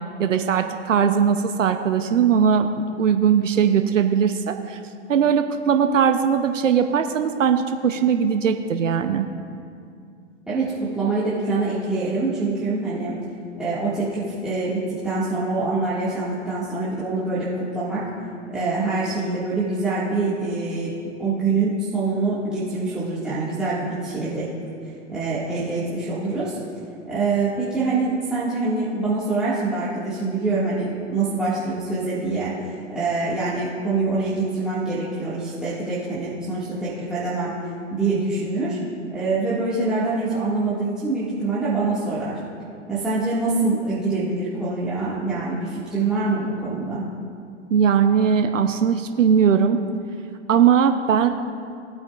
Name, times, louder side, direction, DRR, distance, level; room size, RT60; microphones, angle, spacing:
voice 1, 0.2-4.8 5.1-9.2 47.7-49.8 50.5-51.3, right 7 dB, 85° right, 7 dB, 0.7 m, -19 dB
voice 2, 10.5-13.1 13.6-18.0 18.5-20.9 21.2-24.5 25.1-26.6 27.1-37.5 37.9-38.8 39.1-42.4 42.9-47.0, right 3 dB, ahead, -12 dB, 1.9 m, -25 dB
19.0 x 8.7 x 2.4 m, 2.3 s
hypercardioid pair, 115°, 37 cm